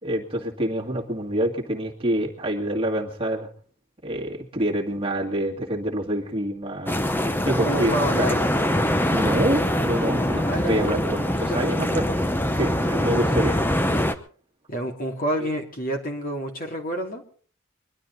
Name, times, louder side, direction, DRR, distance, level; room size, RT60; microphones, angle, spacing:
voice 1, 0.0-3.5 4.0-7.0 7.4-8.5 9.1-12.1 12.5-13.6 15.4-15.5, right 1 dB, 25° right, 0 dB, 2.2 m, -26 dB
sound 1, 6.9-14.1, left 1 dB, 10° left, 0.8 m, -23 dB
voice 2, 7.6-8.4 10.5-11.7 12.8-13.2 14.7-17.2, right 1 dB, 40° left, 2 dB, 2.7 m, -29 dB
23.0 x 12.0 x 4.0 m, 0.44 s
head